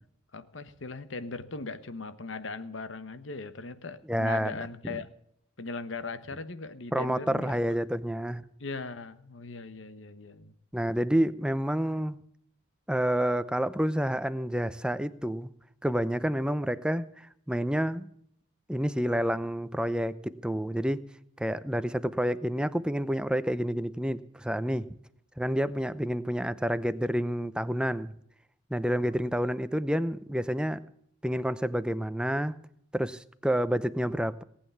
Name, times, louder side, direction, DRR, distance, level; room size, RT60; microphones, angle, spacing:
voice 1, 0.3-5.1 5.6-7.6 8.6-10.5, left 3 dB, 70° left, 1.2 m, -39 dB
voice 2, 4.1-4.5 6.9-8.4 10.7-12.2 12.9-15.5 15.8-18.1 18.7-21.0 21.4-24.9 25.4-28.1 28.7-30.8 31.2-32.5 32.9-34.4, equal, 5° right, 0.6 m, -29 dB
19.0 x 8.7 x 7.1 m
head